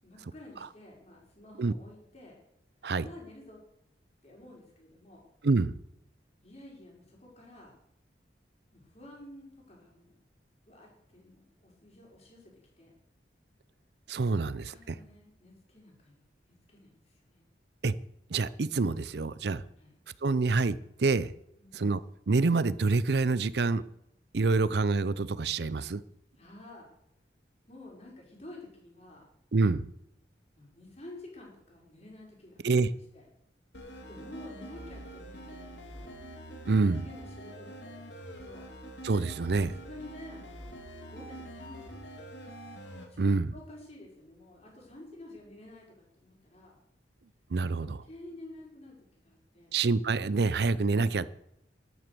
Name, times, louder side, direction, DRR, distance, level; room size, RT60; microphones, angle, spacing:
voice 1, 0.0-2.4 3.0-3.6 4.2-5.2 6.4-7.7 8.7-10.1 10.7-12.9 14.4-16.2 16.7-17.4 19.8-19.9 21.6-21.8 26.4-26.9 27.7-29.2 30.5-32.8 33.1-33.2 34.1-36.1 37.0-38.7 39.6-40.8 41.0-42.3 43.1-46.8 47.7-49.7, left 1 dB, 35° left, 5.6 m, -50 dB
voice 2, 14.1-14.7 17.8-17.9 18.3-19.6 20.2-21.3 21.7-22.0 22.3-23.8 24.3-26.0 29.5-29.9 32.6-32.9 36.7-37.0 39.0-39.7 43.2-43.5 47.5-48.0 49.7-51.3, right 3 dB, 65° right, 0.6 m, -26 dB
sound 1, 33.7-43.1, right 1 dB, 90° left, 3.0 m, -45 dB
12.0 x 11.0 x 6.8 m
head